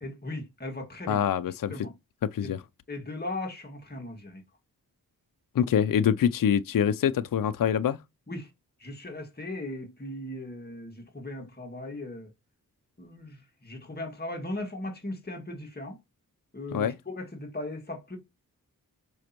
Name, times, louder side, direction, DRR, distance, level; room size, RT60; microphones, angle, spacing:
voice 1, 0.0-1.2 1.7-1.9 2.4-2.5 2.9-4.4 8.3-8.5 8.8-12.3 13.0-16.0 16.5-18.2, left 1 dB, 25° left, 1.9 m, -38 dB
voice 2, 1.1-1.7 2.2-2.6 5.5-8.0 16.7-17.0, left 8 dB, 65° left, 0.5 m, -25 dB
6.3 x 5.1 x 2.9 m
wide cardioid pair, 70°, 36 cm